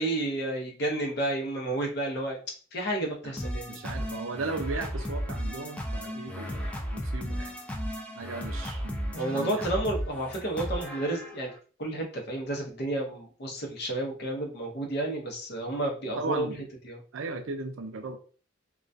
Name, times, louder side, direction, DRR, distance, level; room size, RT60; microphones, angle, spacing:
voice 1, 0.0-2.4 2.7-3.8 9.1-11.5 11.8-16.5 16.8-17.0, right 1 dB, 55° left, 1 dB, 0.7 m, -31 dB
sound 1, 3.4-11.6, equal, 5° left, 0.3 m, -35 dB
voice 2, 3.7-7.5 8.2-9.7 16.2-16.7 17.1-18.2, right 3 dB, 80° right, 6 dB, 0.5 m, -36 dB
2.2 x 2.2 x 2.5 m, 0.39 s
head